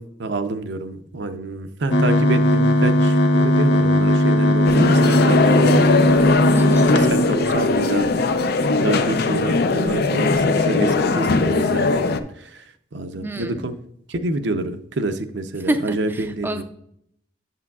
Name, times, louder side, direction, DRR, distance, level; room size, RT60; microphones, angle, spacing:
voice 1, 0.0-5.8 6.9-8.1 8.8-12.1 12.4-13.7 14.1-16.6, right 2 dB, 75° right, 8 dB, 0.6 m, -27 dB
sound 1, 1.9-7.8, left 1 dB, 90° left, 0.9 m, -18 dB
sound 2, 4.6-12.2, left 3 dB, 60° left, 0.5 m, -20 dB
voice 2, 6.5-6.9 13.1-13.7 15.6-16.6, right 1 dB, 10° right, 6 dB, 0.4 m, -27 dB
8.5 x 7.5 x 2.3 m, 0.71 s
head